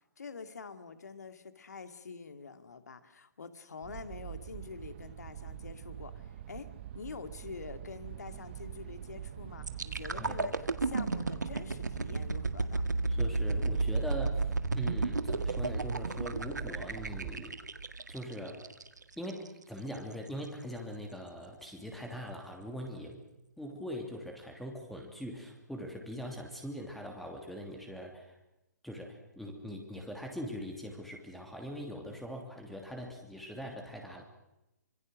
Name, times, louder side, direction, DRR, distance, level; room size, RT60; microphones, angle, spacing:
voice 1, 0.2-6.7 6.9-12.8, left 5 dB, 65° left, 9 dB, 2.3 m, -46 dB
sound 1, 3.8-17.4, right 11 dB, 40° right, 1.3 m, -44 dB
sound 2, 9.6-19.5 19.9-20.1, right 3 dB, 80° right, 1.8 m, -33 dB
voice 2, 10.1-10.5 13.1-17.6 18.1-18.7 19.2-23.2 23.6-28.4 28.8-34.2, equal, ahead, 1 dB, 2.9 m, -42 dB
25.5 x 24.0 x 6.4 m, 0.92 s
figure-of-eight pair, 130°, 10 cm